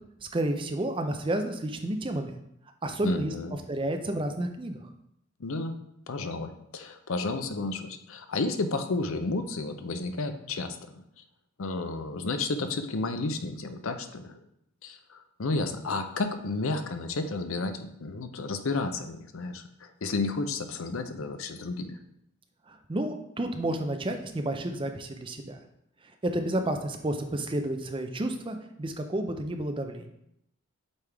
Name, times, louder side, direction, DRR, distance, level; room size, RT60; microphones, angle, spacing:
voice 1, 0.2-2.3 2.8-3.3 3.7-4.9 22.7-25.6 26.2-30.1, right 1 dB, 25° right, 5 dB, 0.5 m, -31 dB
voice 2, 3.0-3.6 5.4-5.7 6.1-11.0 11.6-14.4 14.8-17.7 18.0-22.0, left 3 dB, 70° left, 8 dB, 0.6 m, -32 dB
8.2 x 3.5 x 3.4 m, 0.78 s
head